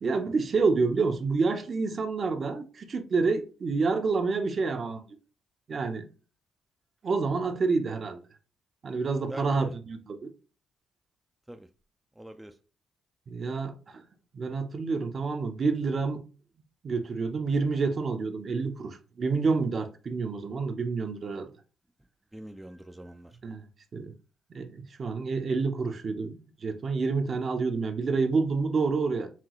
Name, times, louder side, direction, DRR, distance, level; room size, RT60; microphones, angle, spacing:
voice 1, 0.0-5.0 5.7-6.0 7.0-8.2 8.8-10.3 13.3-14.0 14.3-16.2 16.8-21.5 23.4-23.6 23.9-24.1 24.5-29.3, right 4 dB, 45° right, 0.7 m, -28 dB
voice 2, 9.3-9.7 11.5-11.7 12.2-12.5 22.3-23.3, right 1 dB, 10° right, 0.3 m, -44 dB
5.7 x 2.3 x 3.0 m
cardioid pair, 90°, 0 cm